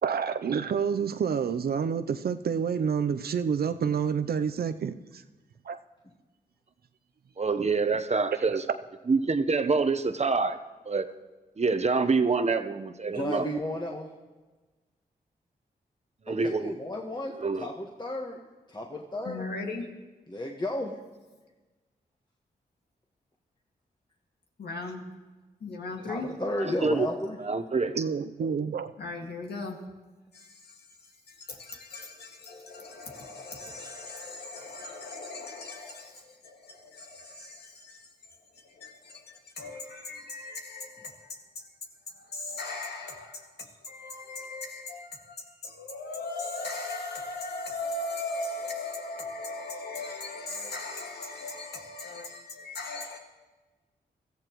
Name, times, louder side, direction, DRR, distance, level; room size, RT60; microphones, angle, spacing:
voice 1, 0.0-5.2 5.7-5.8 8.4-8.6 28.0-28.9, right 6 dB, 70° right, 0.6 m, -28 dB
voice 2, 7.4-8.6 9.1-10.6 10.9-11.0 11.6-13.4 16.3-16.7 17.4-17.7 26.8-27.1 27.4-27.9, right 4 dB, 40° right, 0.9 m, -26 dB
voice 3, 13.1-14.1 16.3-18.4 18.7-19.5 20.3-21.0 26.1-27.4, left 1 dB, 25° left, 1.5 m, -33 dB
voice 4, 19.2-19.9 24.6-25.1 25.6-26.4 29.0-29.8 30.3-41.7 42.1-53.2, left 3 dB, 80° left, 2.1 m, -38 dB
22.0 x 14.0 x 3.1 m
cardioid pair, 50°, 17 cm